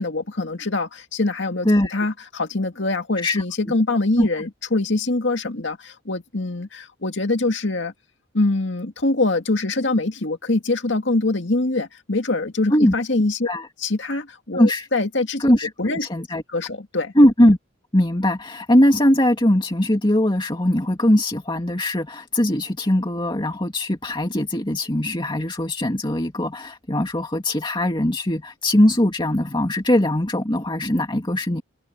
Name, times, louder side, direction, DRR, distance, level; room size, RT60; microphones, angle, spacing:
voice 1, 0.0-7.9 8.3-13.5 13.8-15.4 15.8-16.1 16.5-17.1, left 2 dB, 65° left, 2.2 m, -24 dB
voice 2, 1.6-2.0 3.2-3.4 4.2-4.3 12.7-12.9 13.5-13.7 14.5-14.9 15.4-16.4 17.2-17.6 17.9-31.6, left 1 dB, 25° left, 2.3 m, -20 dB
open air
head